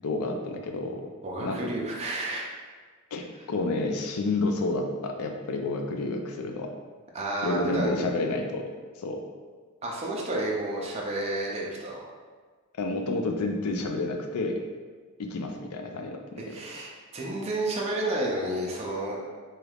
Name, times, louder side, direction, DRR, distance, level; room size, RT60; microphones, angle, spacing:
voice 1, 0.0-1.1 1.4-1.6 3.1-6.7 7.4-8.6 9.0-9.2 12.8-14.6 15.2-16.6, left 2 dB, 75° left, 4 dB, 0.4 m, -30 dB
voice 2, 1.2-2.5 7.1-7.9 9.8-12.0 16.5-19.2, right 2 dB, 30° right, -2 dB, 0.4 m, -31 dB
3.3 x 3.0 x 2.3 m, 1.5 s
head